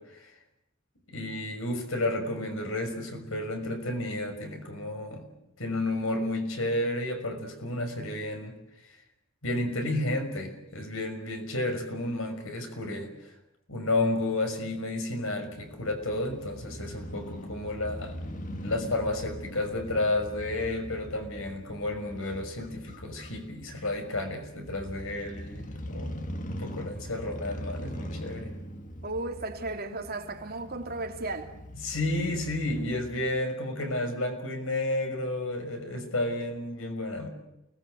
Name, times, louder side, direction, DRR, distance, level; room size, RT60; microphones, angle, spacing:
voice 1, 1.1-5.3 5.6-8.5 9.4-13.3 13.7-18.2 18.6-28.5 31.8-37.3, left 2 dB, 75° left, 5.9 m, -31 dB
Crow / Motorcycle, 15.5-33.4, equal, 40° left, 1.8 m, -42 dB
voice 2, 29.0-31.5, right 2 dB, 45° right, 2.9 m, -35 dB
29.5 x 20.0 x 8.0 m
head